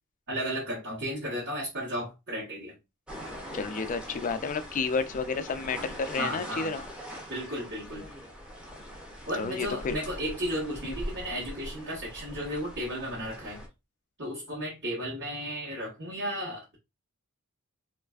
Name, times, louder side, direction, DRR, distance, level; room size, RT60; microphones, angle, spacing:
voice 1, 0.3-2.7 6.2-6.9 7.3-8.1 9.3-13.6 14.2-16.8, equal, 55° right, 1.1 m, -34 dB
sound 1, 3.1-13.7, equal, 5° right, 0.6 m, -42 dB
voice 2, 3.5-6.8 9.3-10.0 10.8-11.0, left 4 dB, 35° left, 0.3 m, -31 dB
3.2 x 2.4 x 2.3 m
head